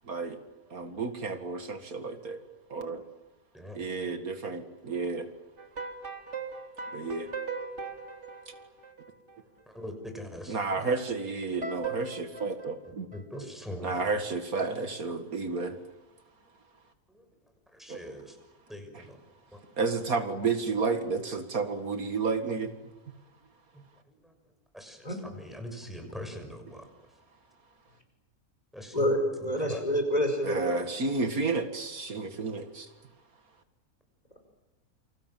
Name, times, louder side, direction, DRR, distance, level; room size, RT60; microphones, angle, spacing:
voice 1, 0.1-0.4 0.7-2.4 2.7-3.0 3.7-5.3 6.9-7.3 10.5-13.1 13.8-15.8 17.9-18.0 19.8-22.7 30.4-32.9, right 4 dB, 75° right, 7 dB, 2.4 m, -31 dB
voice 2, 3.5-3.9 9.7-11.0 13.1-14.0 17.1-17.3 17.7-18.4 18.7-19.2 23.7-24.3 24.7-26.8 28.7-29.0 29.4-29.8, equal, ahead, 4 dB, 6.4 m, -42 dB
sound 1, 5.6-9.4 11.6-13.4, right 4 dB, 50° right, 3.5 m, -39 dB
voice 3, 28.9-30.8, equal, 25° left, 5 dB, 5.3 m, -27 dB
29.0 x 26.5 x 7.6 m, 1.0 s
omnidirectional pair, 1.5 m